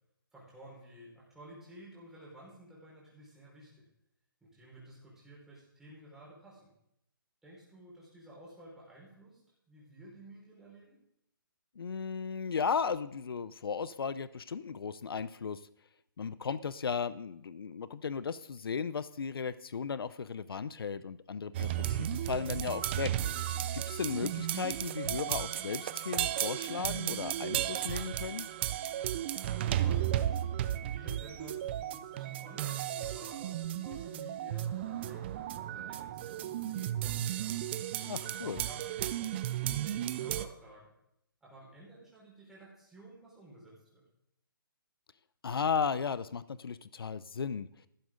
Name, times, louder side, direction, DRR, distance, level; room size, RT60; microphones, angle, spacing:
voice 1, 0.3-3.7 4.4-6.7 7.4-9.4 9.7-11.0 29.3-30.4 30.8-37.6 38.2-40.9 41.4-44.0, right 1 dB, 5° right, -6 dB, 5.1 m, -52 dB
voice 2, 11.8-15.6 16.2-23.1 23.7-28.5 38.0-38.6 45.4-47.7, left 6 dB, 80° left, 16 dB, 0.6 m, -35 dB
sound 1, 21.5-40.5, right 12 dB, 30° right, 0.6 m, -34 dB
14.5 x 12.0 x 3.9 m, 0.78 s
hypercardioid pair, 155°, 12 cm